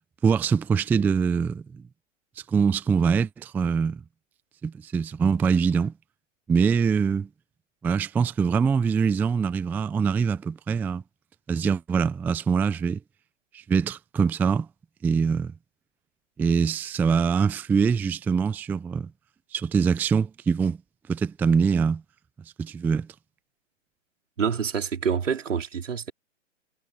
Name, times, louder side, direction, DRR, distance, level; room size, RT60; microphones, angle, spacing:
voice 1, 0.2-1.8 2.5-4.0 4.6-5.9 6.5-7.3 7.8-11.0 11.5-13.0 13.5-14.7 15.0-15.5 16.4-19.1 19.5-20.8 21.1-22.0 22.6-23.1, right 6 dB, 5° right, 0.5 m, -23 dB
voice 2, 24.4-26.1, right 6 dB, 70° right, 4.5 m, -27 dB
figure-of-eight pair, 125°, 39 cm